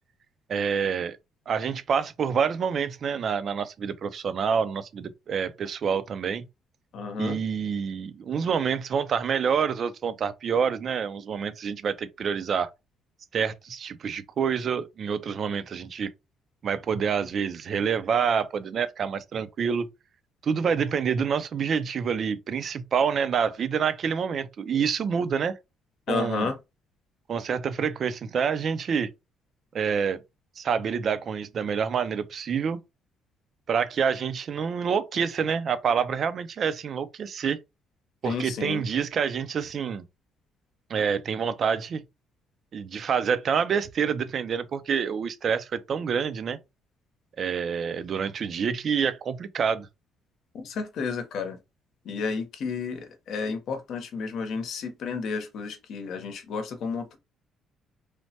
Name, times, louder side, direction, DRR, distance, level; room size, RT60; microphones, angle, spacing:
voice 1, 0.5-1.2 1.5-6.5 7.2-12.7 13.3-16.1 16.6-19.9 20.4-25.5 26.1-26.5 27.3-29.1 29.7-30.2 30.6-32.8 33.7-37.6 38.2-40.0 40.9-42.0 42.7-46.6 47.4-49.9, right 6 dB, 50° right, 0.4 m, -27 dB
voice 2, 6.9-7.4 26.1-26.6 38.2-38.8 50.5-51.6 52.0-57.2, left 5 dB, 65° left, 0.8 m, -31 dB
3.2 x 2.1 x 2.7 m
cardioid pair, 105°, 0 cm